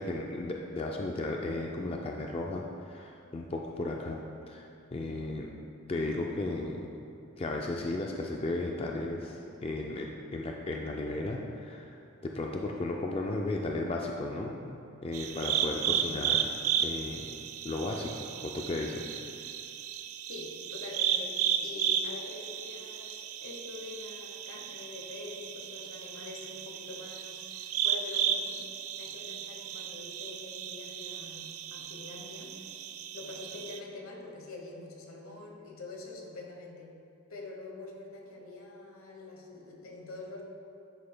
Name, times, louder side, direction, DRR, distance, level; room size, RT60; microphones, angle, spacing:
voice 1, 0.0-4.2 4.5-5.5 5.9-6.9 7.4-12.0 12.2-16.5 16.8-17.3 17.6-18.1 18.4-19.1, left 2 dB, 25° left, 0 dB, 0.3 m, -35 dB
sound 1, 15.1-33.8, right 9 dB, 80° right, 0.4 m, -34 dB
voice 2, 20.3-28.6 29.0-32.5 33.1-36.9 37.3-40.4, left 2 dB, 85° left, 0 dB, 1.0 m, -45 dB
9.6 x 5.7 x 2.2 m, 2.6 s
head